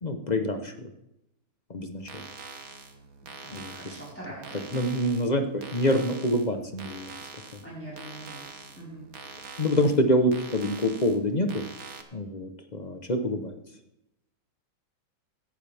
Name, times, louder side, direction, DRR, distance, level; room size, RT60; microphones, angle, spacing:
voice 1, 0.0-0.7 1.7-2.2 3.5-3.7 4.7-7.6 9.6-11.6 12.1-13.6, equal, 30° left, 6 dB, 0.8 m, -26 dB
sound 1, 2.0-12.0, right 4 dB, 50° right, 1.5 m, -45 dB
voice 2, 3.4-5.1 7.6-9.1, right 1 dB, 5° left, -7 dB, 4.7 m, -42 dB
17.0 x 11.5 x 3.5 m, 0.86 s
omnidirectional pair, 2.2 m